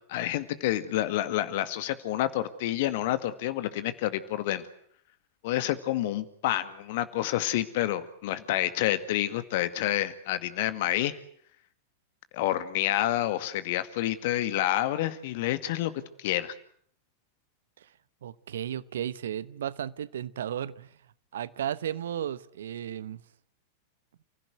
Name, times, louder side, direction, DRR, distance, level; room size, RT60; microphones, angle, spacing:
voice 1, 0.1-4.6 5.4-11.1 12.3-15.9 16.2-16.5, left 13 dB, 50° left, 12 dB, 2.0 m, -28 dB
voice 2, 18.2-20.9 21.3-23.2, right 10 dB, 60° right, 18 dB, 1.0 m, -34 dB
30.0 x 16.0 x 9.3 m, 0.63 s
figure-of-eight pair, 90°, 0 cm